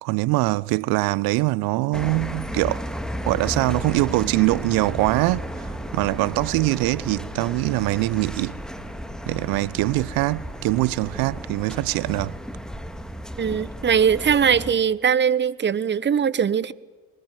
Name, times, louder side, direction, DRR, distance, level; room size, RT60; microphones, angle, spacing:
voice 1, 0.0-2.8 3.2-8.6 9.3-12.4, right 21 dB, 60° right, 0.8 m, -23 dB
sound 1, 1.9-14.7, equal, ahead, 1.9 m, -34 dB
sound 2, 2.4-12.9, right 3 dB, 80° right, 5.6 m, -46 dB
voice 2, 13.4-16.7, right 7 dB, 25° right, 1.0 m, -21 dB
22.5 x 20.0 x 9.0 m
hypercardioid pair, 55°, 41 cm